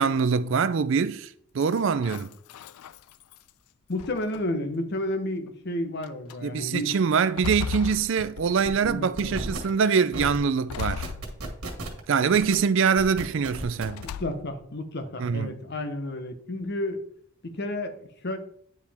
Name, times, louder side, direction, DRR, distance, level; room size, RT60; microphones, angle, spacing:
voice 1, 0.0-2.4 6.4-11.1 12.1-14.1 15.2-15.6, right 6 dB, 55° right, 0.4 m, -24 dB
sound 1, 1.6-3.5 4.0-4.7 5.5-5.6 6.0-6.4 6.9-8.9 9.3-9.8 10.7-11.8 12.3-12.9 13.9-14.7, left 7 dB, 80° left, 0.3 m, -38 dB
voice 2, 3.9-6.9 8.8-9.5 14.0-17.0 17.5-18.4, left 1 dB, 50° left, 0.9 m, -31 dB
sound 2, 7.5-7.6 7.9-8.2 8.6-8.9 9.2-9.6 10.1-10.4 10.7-12.0 12.3-12.5 13.0-14.0, right 2 dB, 80° right, 1.9 m, -35 dB
9.4 x 5.1 x 3.4 m
head